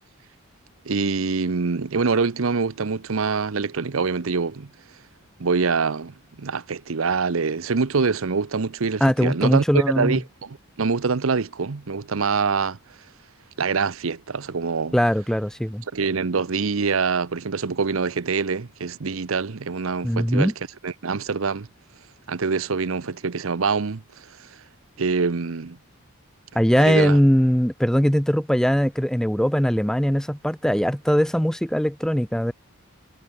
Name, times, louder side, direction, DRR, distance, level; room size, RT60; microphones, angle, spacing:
voice 1, 0.9-4.7 5.4-12.8 13.6-15.0 15.9-20.5 20.8-21.7 22.3-24.0 24.4-24.5 25.0-25.8 26.8-27.2, right 4 dB, 80° right, 0.8 m, -25 dB
voice 2, 9.0-10.2 14.9-15.8 20.0-20.5 26.5-32.5, equal, 5° left, 0.8 m, -20 dB
head